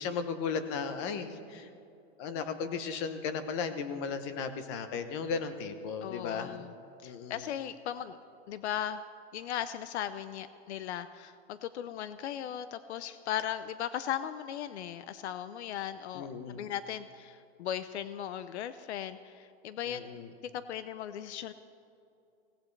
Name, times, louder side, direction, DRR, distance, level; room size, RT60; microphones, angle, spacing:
voice 1, 0.0-1.7 2.2-6.5 7.0-7.5 16.1-16.7 19.9-20.3, left 5 dB, 25° left, 10 dB, 0.8 m, -35 dB
voice 2, 6.0-6.7 7.0-8.2 8.5-9.1 9.3-20.0 20.7-21.5, left 10 dB, 85° left, 13 dB, 0.7 m, -37 dB
24.0 x 17.5 x 3.3 m, 2.7 s
supercardioid pair, 175°, 33 cm